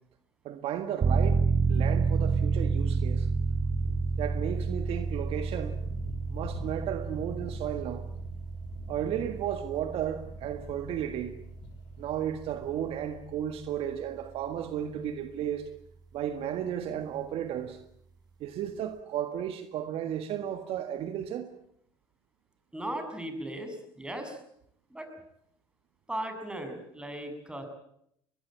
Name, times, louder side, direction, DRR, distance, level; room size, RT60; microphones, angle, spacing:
voice 1, 0.4-3.3 4.2-5.8 6.3-8.1 8.9-11.3 12.0-15.7 16.1-17.8 18.4-21.5, right 10 dB, 60° right, 1.7 m, -34 dB
sound 1, 1.0-13.5 13.9-14.0, right 4 dB, 35° right, 2.4 m, -30 dB
sound 2, 3.1-13.3, left 5 dB, 60° left, 6.2 m, -49 dB
voice 2, 22.7-24.4 24.9-25.1 26.1-27.7, right 1 dB, 10° right, 6.7 m, -37 dB
22.0 x 20.5 x 8.8 m
hypercardioid pair, 75°, 11 cm